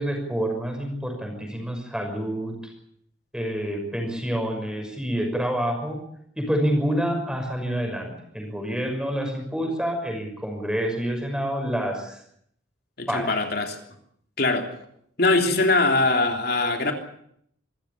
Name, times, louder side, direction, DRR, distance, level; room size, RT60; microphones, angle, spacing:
voice 1, 0.0-2.7 3.3-6.0 6.4-12.2 13.1-13.4, equal, 5° right, 3 dB, 6.0 m, -28 dB
voice 2, 13.0-13.8 14.4-14.7 15.2-16.9, left 2 dB, 55° left, 4 dB, 3.4 m, -22 dB
26.5 x 15.0 x 8.5 m, 0.70 s
head